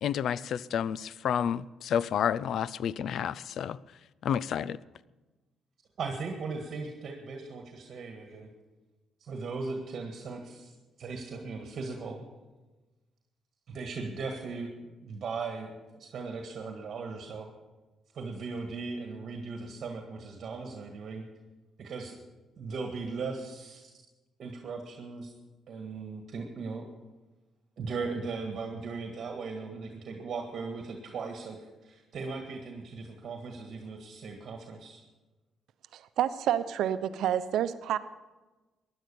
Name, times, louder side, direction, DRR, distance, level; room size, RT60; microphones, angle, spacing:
voice 1, 0.0-3.8 4.2-4.8, left 8 dB, 70° left, 20 dB, 0.4 m, -30 dB
voice 2, 6.0-8.5 9.2-10.7 11.0-12.2 13.7-14.7 15.0-17.5 18.1-21.2 21.8-22.2 22.6-23.9 24.4-25.3 25.7-26.9 27.8-35.0, right 4 dB, 60° right, 3 dB, 1.7 m, -38 dB
voice 3, 35.9-38.0, right 10 dB, 80° right, 12 dB, 0.8 m, -29 dB
15.5 x 10.5 x 7.0 m, 1.2 s
cardioid pair, 90°, 0 cm